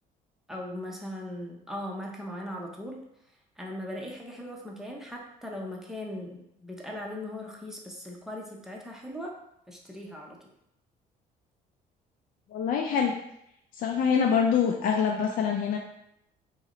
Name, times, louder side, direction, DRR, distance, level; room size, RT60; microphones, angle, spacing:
voice 1, 0.5-3.0 3.6-9.3 9.7-10.5, left 1 dB, 5° right, -1 dB, 0.6 m, -39 dB
voice 2, 12.5-13.1 13.7-15.8, left 7 dB, 55° left, 2 dB, 0.4 m, -25 dB
4.7 x 2.1 x 3.0 m, 0.78 s
cardioid pair, 110°, 17 cm